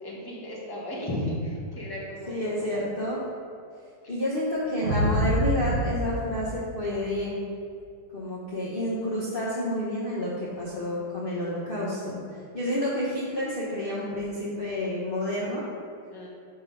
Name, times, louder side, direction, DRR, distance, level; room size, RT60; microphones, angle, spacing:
voice 1, 0.0-2.9 16.1-16.3, left 1 dB, 20° left, -4 dB, 0.7 m, -34 dB
voice 2, 2.3-3.2 4.1-7.4 8.1-12.2 12.5-15.6, left 1 dB, 55° left, -7 dB, 0.6 m, -29 dB
sound 1, 4.8-7.3, equal, 50° right, 1.6 m, -27 dB
5.7 x 3.8 x 5.5 m, 2.4 s
omnidirectional pair, 2.2 m